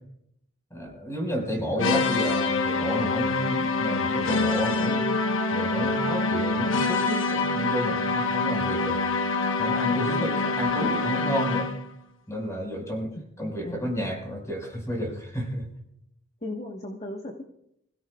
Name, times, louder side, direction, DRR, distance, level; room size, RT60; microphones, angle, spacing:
voice 1, 0.7-5.1 5.5-9.0 9.6-11.7 12.3-15.7, equal, 15° left, 1 dB, 5.1 m, -31 dB
sound 1, 1.8-11.9, left 3 dB, 75° left, 1.1 m, -25 dB
voice 2, 10.1-10.4 13.1-13.9 16.4-17.5, left 1 dB, 35° left, 0 dB, 1.3 m, -37 dB
26.5 x 16.5 x 2.4 m, 0.77 s
head